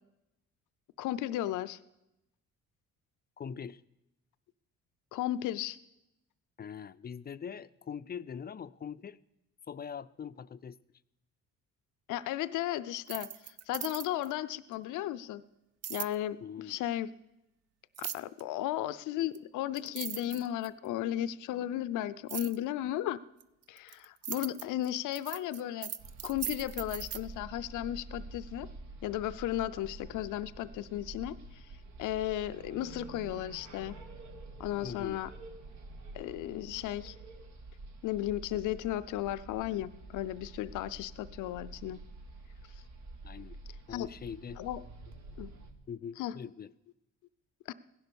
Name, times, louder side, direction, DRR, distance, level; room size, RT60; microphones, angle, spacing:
voice 1, 1.0-1.8 5.1-5.8 12.1-15.4 15.9-17.1 18.0-23.2 23.7-25.9 26.2-28.7 29.0-31.6 32.0-33.9 34.6-35.3 36.1-37.2 38.0-42.0 43.9-44.1 44.6-44.8 45.4-45.5 46.2-46.4 47.7-47.8, left 13 dB, 85° left, 15 dB, 0.6 m, -35 dB
voice 2, 3.4-3.8 6.6-9.2 9.7-10.8 16.4-16.8 34.8-35.2 43.2-43.6 43.9-44.6 45.9-46.7, left 7 dB, 35° left, 14 dB, 0.4 m, -42 dB
sound 1, 13.0-14.3 15.8-16.1 17.9-18.4 19.3-19.4 19.8-20.9 22.3-22.6 23.4-27.2, right 10 dB, 55° right, 0.6 m, -39 dB
sound 2, 26.0-45.7, right 2 dB, 70° right, 1.7 m, -48 dB
16.0 x 10.5 x 6.9 m, 0.91 s
cardioid pair, 90°, 30 cm